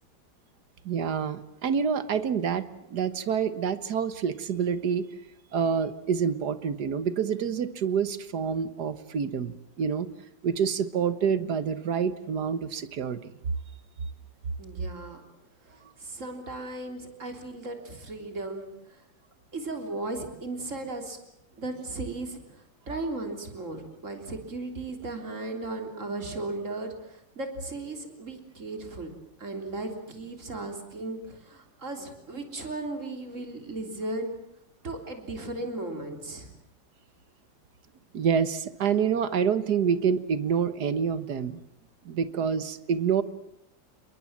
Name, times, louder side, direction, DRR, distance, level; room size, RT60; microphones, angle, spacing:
voice 1, 0.9-5.1 5.5-10.1 10.4-13.3 38.1-41.6 42.1-43.2, right 7 dB, 60° right, 13 dB, 1.8 m, -27 dB
voice 2, 14.6-15.2 15.6-19.0 19.5-21.2 21.6-29.1 29.4-34.3 34.8-36.5, right 2 dB, 40° right, 5 dB, 3.8 m, -36 dB
28.5 x 22.0 x 7.4 m, 0.82 s
omnidirectional pair, 2.0 m